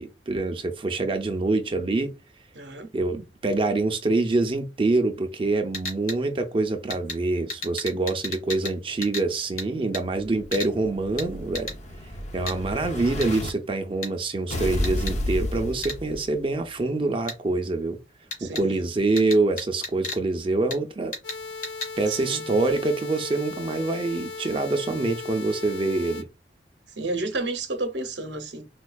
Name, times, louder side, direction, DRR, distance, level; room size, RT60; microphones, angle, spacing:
voice 1, 0.0-2.1 2.9-11.7 12.3-18.0 18.4-21.2 22.0-26.3, right 2 dB, 30° right, 0.4 m, -25 dB
voice 2, 2.5-2.9 18.4-18.9 22.1-22.5 27.0-28.7, right 2 dB, 75° right, 0.7 m, -31 dB
sound 1, 5.7-6.2 6.9-7.2 7.5-8.8 9.0-9.3 9.6-9.7 9.9-10.0 10.5-10.7 11.2-11.3 11.6-11.8 12.5-12.6 13.2-13.3 14.0-14.1 14.8-15.2 15.8-16.0 17.3-17.4 18.3-18.6 19.2-20.2 20.7-20.8 21.1-21.4 21.6-21.9, left 2 dB, 55° left, 1.7 m, -33 dB
Explosion, 10.1-13.5 14.5-16.5, left 1 dB, 40° left, 0.6 m, -31 dB
sound 2, 21.2-26.2, left 4 dB, 80° left, 0.7 m, -37 dB
4.3 x 2.3 x 2.3 m
head